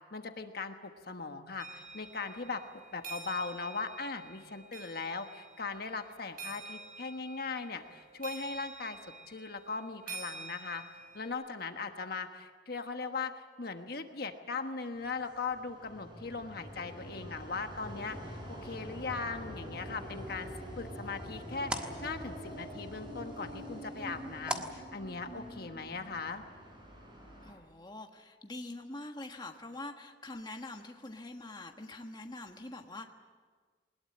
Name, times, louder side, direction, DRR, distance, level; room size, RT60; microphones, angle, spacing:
voice 1, 0.1-2.6 2.9-10.8 11.1-20.5 20.8-26.4, left 4 dB, 55° left, 6 dB, 1.3 m, -39 dB
sound 1, 1.6-11.3, right 3 dB, 50° right, 5.6 m, -48 dB
sound 2, 14.9-27.5, equal, 25° right, 6.3 m, -45 dB
sound 3, 20.3-25.7, right 1 dB, 5° right, 1.4 m, -44 dB
voice 2, 27.4-33.1, left 2 dB, 25° left, 4 dB, 1.4 m, -44 dB
21.5 x 20.5 x 8.6 m, 1.5 s
head